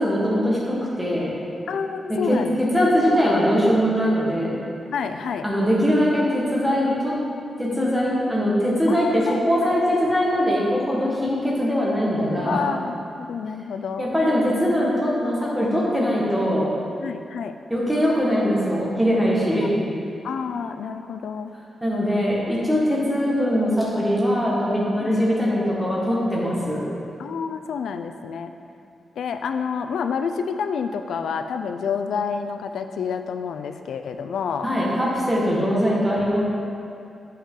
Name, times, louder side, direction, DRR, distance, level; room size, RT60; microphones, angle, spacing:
voice 1, 0.0-1.3 2.1-4.6 5.4-7.2 7.6-12.6 14.0-16.7 17.7-19.7 21.8-26.8 34.6-36.4, equal, 5° right, -6 dB, 1.5 m, -21 dB
voice 2, 1.7-2.6 4.9-5.5 8.9-9.8 12.5-14.0 17.0-17.5 20.2-21.5 25.0-25.2 27.2-28.5 29.2-34.7, left 6 dB, 85° left, 8 dB, 0.4 m, -29 dB
8.4 x 5.4 x 3.7 m, 2.5 s
wide cardioid pair, 150°, 0 cm